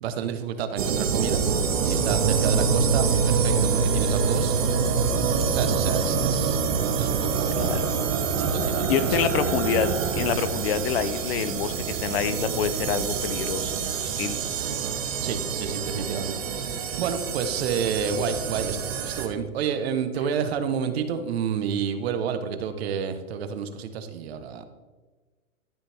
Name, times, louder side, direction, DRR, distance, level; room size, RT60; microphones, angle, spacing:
voice 1, 0.0-1.4 1.8-4.9 5.5-6.6 7.0-7.8 8.3-9.2 15.2-24.7, right 7 dB, 45° right, 9 dB, 1.2 m, -30 dB
sound 1, 0.8-19.3, right 6 dB, 65° right, 1.9 m, -26 dB
sound 2, 2.1-9.3, right 4 dB, 5° right, 2.1 m, -29 dB
voice 2, 7.6-7.9 8.9-14.4, left 8 dB, 45° left, 13 dB, 0.8 m, -27 dB
14.0 x 9.0 x 3.5 m, 1.3 s
hypercardioid pair, 150°, 42 cm